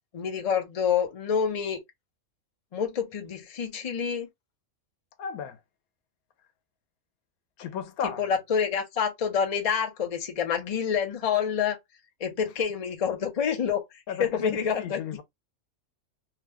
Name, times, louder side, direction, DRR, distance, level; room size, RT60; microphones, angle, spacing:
voice 1, 0.1-1.8 2.7-4.3 8.2-11.8 12.2-13.8 14.2-15.0, left 7 dB, 40° left, 0.6 m, -27 dB
voice 2, 5.2-5.6 7.6-8.3 14.1-15.2, left 8 dB, 90° left, 1.1 m, -34 dB
2.8 x 2.2 x 3.4 m
omnidirectional pair, 1.5 m